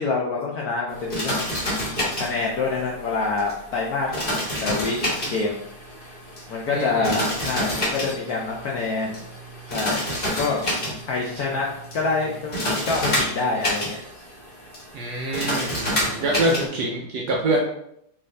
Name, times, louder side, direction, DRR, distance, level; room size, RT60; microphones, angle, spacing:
voice 1, 0.0-1.5 2.0-5.6 6.5-9.2 9.7-10.6 11.1-11.7 11.9-14.2 15.9-16.7, left 4 dB, 80° left, -2 dB, 0.8 m, -27 dB
sound 1, 0.9-16.7, equal, 35° left, 1.1 m, -29 dB
voice 2, 6.7-7.1 14.9-17.6, right 2 dB, 70° right, -1 dB, 1.0 m, -25 dB
3.8 x 2.6 x 3.2 m, 0.75 s
omnidirectional pair, 2.2 m